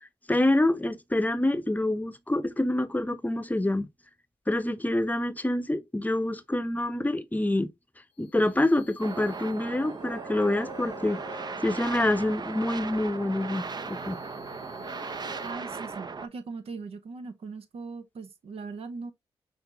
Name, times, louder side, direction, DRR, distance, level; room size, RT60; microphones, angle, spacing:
voice 1, 0.3-3.9 4.5-7.7 8.2-11.2 11.6-14.2, left 1 dB, 15° left, 0.8 m, -26 dB
sound 1, 8.2-15.5, left 2 dB, 90° left, 0.8 m, -49 dB
sound 2, 9.0-16.3, right 4 dB, 40° right, 0.6 m, -37 dB
voice 2, 15.4-19.1, right 4 dB, 65° right, 0.8 m, -39 dB
5.8 x 2.8 x 2.9 m
supercardioid pair, 45°, 11 cm